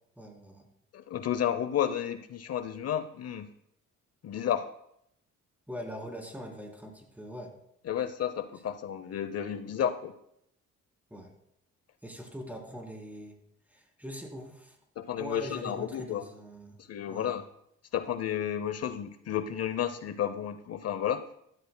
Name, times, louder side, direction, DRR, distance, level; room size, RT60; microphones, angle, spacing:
voice 1, 0.2-0.7 5.7-7.5 11.1-11.3 12.0-13.4 13.7-14.8 15.2-16.8 17.1-17.4, equal, 5° right, 0 dB, 3.5 m, -42 dB
voice 2, 0.9-3.5 4.2-4.7 7.9-10.1 15.0-16.2 16.9-17.4 17.9-21.2, left 9 dB, 55° left, 11 dB, 0.7 m, -32 dB
15.5 x 13.0 x 2.2 m, 0.75 s
cardioid pair, 90°, 30 cm